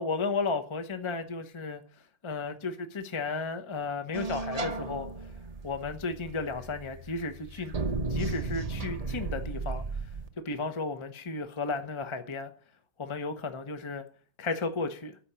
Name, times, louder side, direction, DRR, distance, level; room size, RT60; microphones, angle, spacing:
voice 1, 0.0-1.8 2.2-5.1 5.6-7.7 8.1-9.8 10.4-12.5 13.0-14.0 14.4-15.2, left 4 dB, 50° left, 0.3 m, -33 dB
sound 1, 4.1-10.3, right 3 dB, 55° right, 0.4 m, -35 dB
13.5 x 5.2 x 7.4 m
omnidirectional pair, 2.3 m